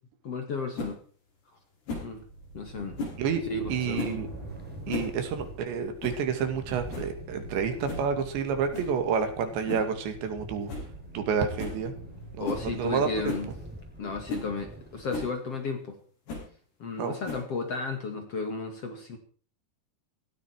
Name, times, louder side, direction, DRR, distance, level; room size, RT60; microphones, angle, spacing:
voice 1, 0.2-1.0 2.0-2.2 2.5-3.0 3.5-4.0 4.9-5.1 12.4-13.5 14.0-16.0 16.8-19.2, left 3 dB, 45° left, 5 dB, 2.4 m, -34 dB
sound 1, 0.8-0.9 1.9-2.1 3.0-3.2 3.9-4.2 4.7-5.2 5.4-5.5 6.0-6.3 6.6-6.7 6.9-7.2 7.9-8.1 8.7-9.0 9.7-9.9 10.3-10.4 10.7-10.9 11.2-11.3 11.6-11.8 12.4-12.7 13.3-13.5 14.0-14.1 14.3-14.5 15.1-15.3 16.3-16.5 17.3-17.6, left 3 dB, 65° left, 8.8 m, -35 dB
sound 2, 2.1-13.3, right 2 dB, 30° right, 7.8 m, -45 dB
sound 3, 2.7-15.4, equal, ahead, 3.4 m, -47 dB
voice 2, 3.7-4.3 4.9-10.7 11.1-11.9 12.3-13.3 17.0-17.2, right 6 dB, 85° right, 7 dB, 4.5 m, -29 dB
17.5 x 16.5 x 4.6 m, 0.43 s
omnidirectional pair, 5.0 m